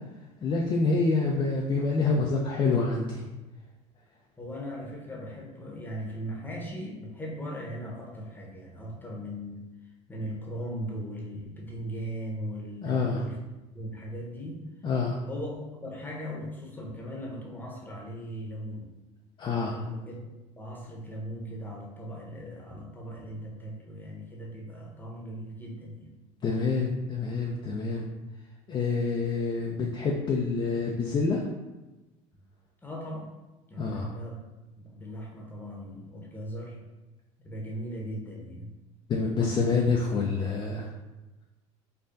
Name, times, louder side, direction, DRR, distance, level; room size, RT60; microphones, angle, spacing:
voice 1, 0.4-3.2 12.8-13.2 14.8-15.2 19.4-19.8 26.4-28.1 28.7-31.4 33.8-34.1 39.1-40.9, left 4 dB, 30° left, -1 dB, 0.4 m, -27 dB
voice 2, 4.4-9.7 10.1-13.4 13.7-14.6 15.2-18.9 19.7-20.2 20.6-26.2 32.8-33.3 33.7-34.4 34.8-36.8 37.4-38.7, equal, 10° left, -2 dB, 0.9 m, -38 dB
4.5 x 2.3 x 2.5 m, 1.1 s
supercardioid pair, 95°, 16 cm